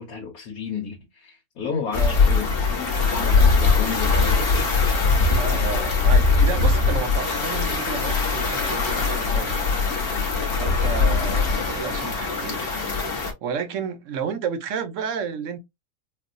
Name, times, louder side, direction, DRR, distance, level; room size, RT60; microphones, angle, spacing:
voice 1, 0.0-4.7, left 6 dB, 85° left, 1.4 m, -32 dB
sound 1, 1.9-13.3, left 4 dB, 45° left, 1.2 m, -21 dB
voice 2, 5.4-9.7 10.5-12.6 13.4-15.6, right 6 dB, 65° right, 1.0 m, -31 dB
4.5 x 2.2 x 2.5 m
omnidirectional pair, 1.5 m